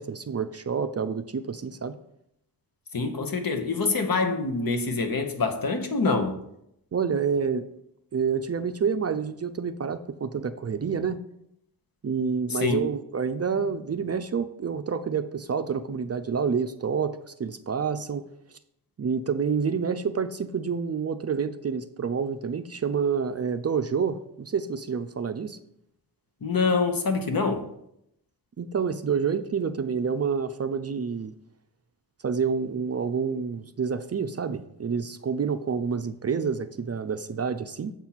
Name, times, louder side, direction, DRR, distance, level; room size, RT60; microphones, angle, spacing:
voice 1, 0.0-2.0 6.9-7.7 8.1-11.2 12.0-18.2 19.0-25.6 28.6-31.3 32.2-37.9, right 6 dB, 40° right, 0.4 m, -28 dB
voice 2, 2.9-6.4 12.5-12.8 26.4-27.7, left 4 dB, 55° left, 1.1 m, -25 dB
7.3 x 4.4 x 5.7 m
wide cardioid pair, 85°, 40 cm